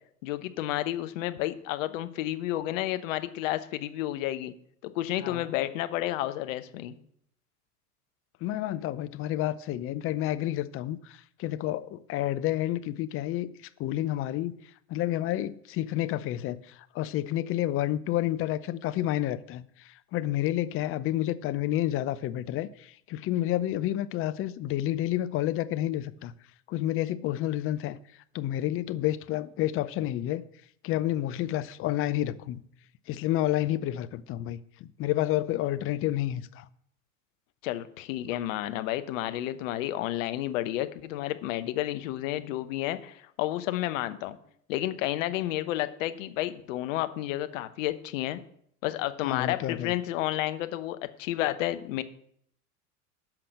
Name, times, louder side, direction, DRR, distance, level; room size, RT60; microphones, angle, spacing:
voice 1, 0.2-4.5 4.8-7.0 37.6-44.4 44.7-48.4 48.8-52.0, left 14 dB, 55° left, 1.0 m, -31 dB
voice 2, 8.4-14.5 14.9-26.3 26.7-28.0 28.3-30.4 30.8-32.6 33.1-36.7 49.2-49.9, left 14 dB, 30° left, 0.6 m, -30 dB
10.5 x 5.9 x 6.6 m
figure-of-eight pair, 85°, 46 cm